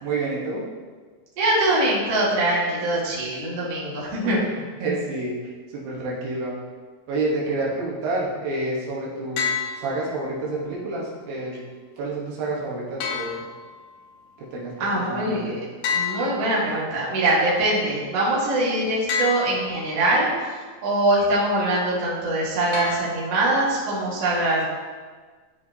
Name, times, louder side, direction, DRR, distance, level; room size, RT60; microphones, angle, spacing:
voice 1, 0.0-0.6 4.8-5.3 5.7-6.6 7.1-9.5 9.8-11.6 12.0-13.4 14.5-15.6, right 2 dB, 80° right, -5 dB, 3.1 m, -28 dB
voice 2, 1.4-4.4 14.8-15.5 15.9-20.6 20.8-24.6, right 1 dB, 50° right, -6 dB, 2.5 m, -23 dB
sound 1, 9.4-10.4 13.0-14.1 15.8-17.1 19.1-20.0 22.7-23.6, left 6 dB, 75° left, 2.0 m, -30 dB
12.0 x 5.0 x 2.8 m, 1.5 s
omnidirectional pair, 4.1 m